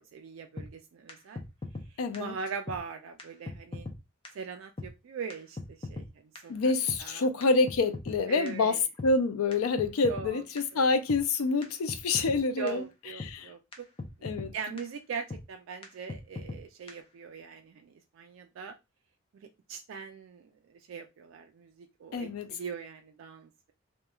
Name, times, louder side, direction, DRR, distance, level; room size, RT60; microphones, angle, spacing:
voice 1, 0.0-1.4 1.9-3.9 4.3-6.1 6.4-6.7 7.0-7.3 8.3-8.8 10.0-10.4 10.7-10.9 12.6-13.9 14.2-18.7 19.3-23.7, right 6 dB, 65° right, 0.3 m, -41 dB
sound 1, 0.6-0.7 1.1-1.2 1.4-1.9 2.1-2.2 2.7-2.8 3.2-3.3 3.5-4.0 4.2-4.3 4.8-4.9 5.3-5.4 5.6-6.1 6.4-6.5 6.9-7.0 7.4-8.2 8.5-8.6 9.0-9.1 9.5-9.6 9.8-10.3 10.6-10.7 11.1-11.2 11.6-11.7 11.9-12.4 12.7-12.8 13.2-13.3 13.7-13.8 14.0-14.5 14.8-14.9 15.3-15.4 15.8-15.9 16.1-16.6 16.9-17.0, left 2 dB, 25° left, 0.4 m, -38 dB
voice 2, 2.0-2.3 6.5-12.8 13.2-13.5 14.2-14.5 22.1-22.5, left 3 dB, 85° left, 0.4 m, -27 dB
2.9 x 2.2 x 2.3 m
head